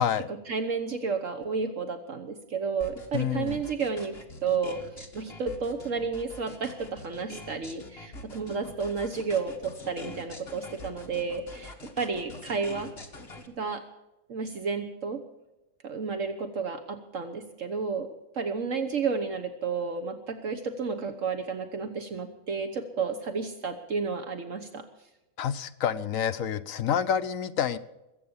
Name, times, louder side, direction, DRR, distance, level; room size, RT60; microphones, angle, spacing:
voice 1, 0.3-12.9 13.5-13.8 14.3-15.2 15.8-18.1 18.3-24.8, right 5 dB, 60° right, 6 dB, 1.5 m, -32 dB
sound 1, 2.8-13.5, left 2 dB, 45° left, 2.0 m, -45 dB
voice 2, 3.1-3.6 25.4-27.8, left 8 dB, 70° left, 10 dB, 1.2 m, -28 dB
21.5 x 8.5 x 7.2 m, 0.98 s
omnidirectional pair, 1.5 m